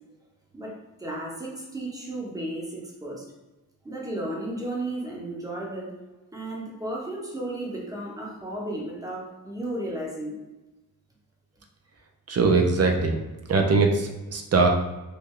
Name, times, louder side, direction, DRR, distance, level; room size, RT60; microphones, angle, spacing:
voice 1, 0.5-3.3 3.8-5.9 6.2-10.4, right 1 dB, 10° right, -4 dB, 0.9 m, -34 dB
voice 2, 12.3-13.1 13.5-14.7, right 3 dB, 45° right, 3 dB, 0.5 m, -21 dB
3.2 x 2.2 x 3.6 m, 1.1 s
cardioid pair, 95°, 36 cm